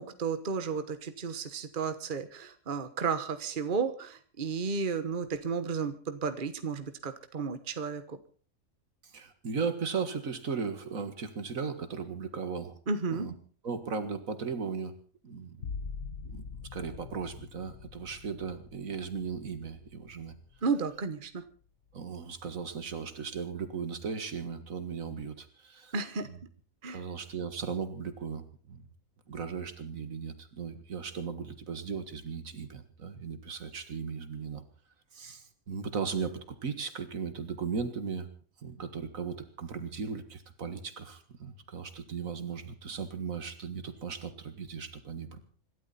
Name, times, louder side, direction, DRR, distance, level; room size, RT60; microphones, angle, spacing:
voice 1, 0.0-8.2 12.9-13.3 20.6-21.4 25.9-26.3 26.8-27.0, right 5 dB, 40° right, 10 dB, 1.4 m, -33 dB
voice 2, 9.0-12.8 13.1-13.3 13.6-14.9 15.2-15.7 16.3-16.4 16.7-20.3 21.9-25.9 26.9-28.8 29.3-34.6 35.1-38.3 38.6-45.4, right 5 dB, 75° right, 10 dB, 2.1 m, -37 dB
sound 1, 15.6-21.1 21.5-22.1, left 5 dB, 65° left, 1.4 m, -44 dB
26.0 x 12.5 x 4.2 m, 0.41 s
omnidirectional pair, 1.4 m